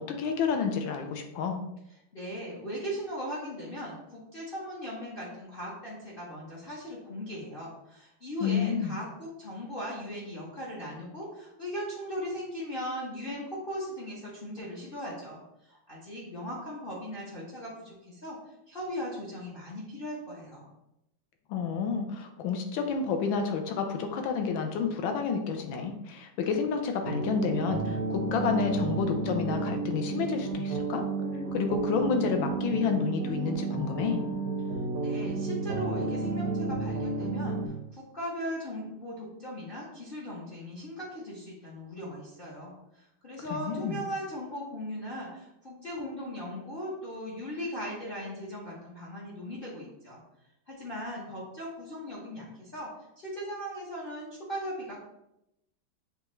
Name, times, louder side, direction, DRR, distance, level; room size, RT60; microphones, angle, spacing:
voice 1, 0.0-1.6 8.4-8.9 21.5-31.1 31.5-34.2 43.5-44.0, left 6 dB, 80° left, 5 dB, 1.3 m, -30 dB
voice 2, 2.1-18.4 18.7-20.7 35.0-50.2 50.7-52.9 53.2-55.0, equal, 55° left, -6 dB, 0.6 m, -38 dB
sound 1, 27.0-37.7, right 3 dB, 75° right, 0.8 m, -32 dB
6.8 x 2.3 x 3.0 m, 0.85 s
omnidirectional pair, 2.2 m